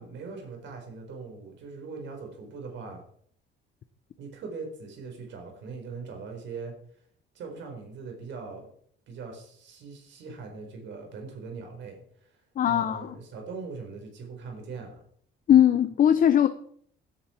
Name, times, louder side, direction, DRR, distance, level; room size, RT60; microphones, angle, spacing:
voice 1, 0.0-3.0 4.2-6.7 7.3-8.7 9.1-12.4 12.6-15.0, right 4 dB, 65° right, 4.4 m, -41 dB
voice 2, 12.6-13.1 15.5-16.5, left 10 dB, 45° left, 0.8 m, -20 dB
16.5 x 11.0 x 4.5 m
cardioid pair, 145°, 20 cm